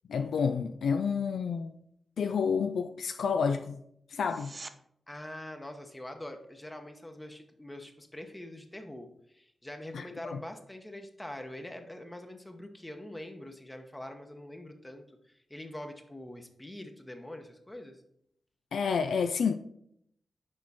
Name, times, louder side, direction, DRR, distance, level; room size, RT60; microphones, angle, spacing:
voice 1, 0.1-1.7 2.2-3.8 4.1-4.5 9.9-10.4 18.7-19.5, left 6 dB, 85° left, 8 dB, 0.3 m, -29 dB
sound 1, 4.2-4.8 16.1-16.2, right 3 dB, 40° right, 0.5 m, -46 dB
voice 2, 5.1-18.0, left 1 dB, 15° left, 5 dB, 0.9 m, -44 dB
6.4 x 4.5 x 4.1 m, 0.73 s
cardioid pair, 60°, 0 cm